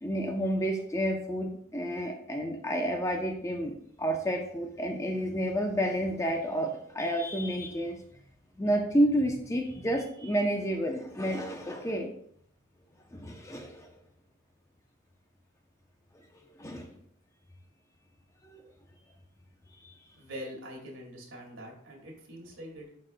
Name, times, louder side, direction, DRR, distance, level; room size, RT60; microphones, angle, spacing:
voice 1, 0.0-8.0 8.6-12.1 13.1-13.9 16.1-16.9 18.4-18.6 19.8-19.9, equal, 15° left, 3 dB, 0.6 m, -30 dB
voice 2, 20.2-22.9, equal, 70° right, -1 dB, 2.0 m, -43 dB
11.0 x 4.2 x 2.2 m, 0.66 s
head